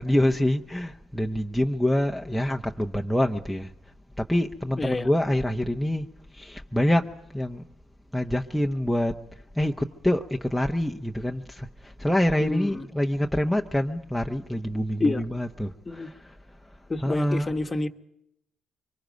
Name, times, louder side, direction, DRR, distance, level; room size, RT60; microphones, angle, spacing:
voice 1, 0.0-3.7 4.2-7.7 8.1-9.2 9.5-16.4 16.6-16.7 17.0-17.5, left 1 dB, ahead, 0.9 m, -26 dB
voice 2, 4.8-5.1 12.4-12.9 15.0-15.2 15.9-16.1 16.9-17.9, left 2 dB, 20° left, 1.2 m, -28 dB
25.5 x 24.0 x 5.3 m
cardioid pair, 115°, 0 cm